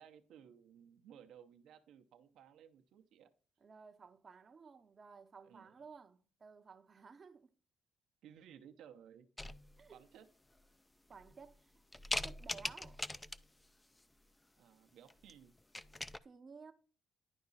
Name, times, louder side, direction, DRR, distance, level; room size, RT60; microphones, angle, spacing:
voice 1, 0.0-3.3 5.4-5.7 8.2-9.3 9.9-10.3 14.6-15.6, right 9 dB, 85° right, 0.7 m, -58 dB
voice 2, 3.6-7.5 9.8-10.0 11.1-11.7 12.2-13.0 16.2-16.7, right 5 dB, 40° right, 0.6 m, -56 dB
sound 1, 9.4-10.0 10.6-10.7 11.1-11.6 11.9-13.6 15.1-15.3 15.6-16.2, left 1 dB, 15° left, 0.4 m, -41 dB
11.0 x 4.7 x 4.0 m
cardioid pair, 90°, 0 cm